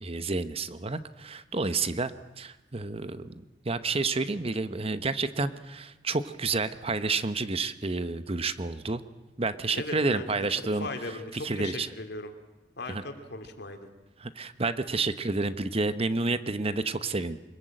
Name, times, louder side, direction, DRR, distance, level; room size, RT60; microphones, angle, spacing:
voice 1, 0.0-9.0 9.4-10.9 11.3-11.9 12.9-13.0 14.2-17.4, right 3 dB, 35° right, 12 dB, 1.0 m, -30 dB
voice 2, 9.7-10.3 10.8-12.3 12.8-13.9, left 2 dB, 60° left, 6 dB, 2.8 m, -38 dB
25.0 x 21.5 x 9.0 m, 1.0 s
head